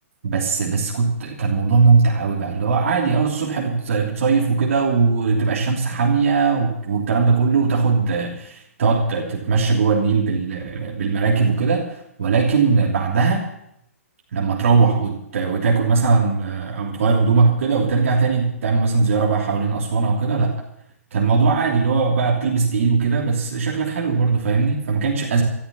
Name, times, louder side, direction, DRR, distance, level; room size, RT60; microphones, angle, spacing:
voice 1, 0.2-13.4 14.3-20.5 21.1-25.4, right 4 dB, 65° right, -2 dB, 3.1 m, -19 dB
14.0 x 13.0 x 7.0 m, 0.77 s
figure-of-eight pair, 120°, 8 cm